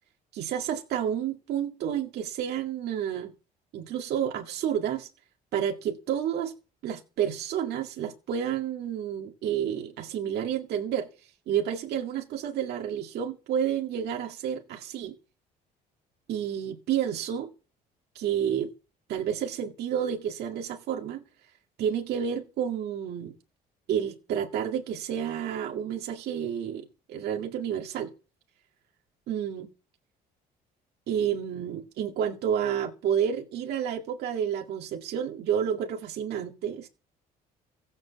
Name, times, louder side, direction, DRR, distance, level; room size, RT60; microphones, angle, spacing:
voice 1, 0.3-3.3 3.7-5.1 5.5-6.5 6.8-15.1 16.3-17.5 18.1-18.7 19.1-21.2 21.8-23.3 23.9-28.1 29.3-29.7 31.1-36.9, right 9 dB, 70° right, 2.1 m, -30 dB
16.0 x 7.9 x 7.4 m
cardioid pair, 110°, 17 cm